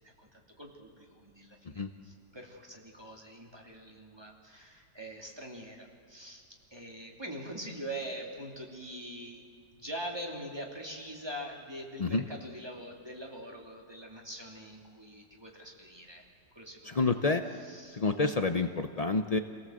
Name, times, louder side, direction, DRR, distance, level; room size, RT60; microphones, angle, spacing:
voice 1, 0.2-6.4 6.7-9.4 9.7-16.2 16.5-17.1 17.6-18.0, right 1 dB, 15° right, 0 dB, 2.9 m, -43 dB
voice 2, 16.8-17.4 17.9-19.4, left 3 dB, 75° left, 7 dB, 0.3 m, -28 dB
27.5 x 17.5 x 7.8 m, 2.3 s
omnidirectional pair, 2.0 m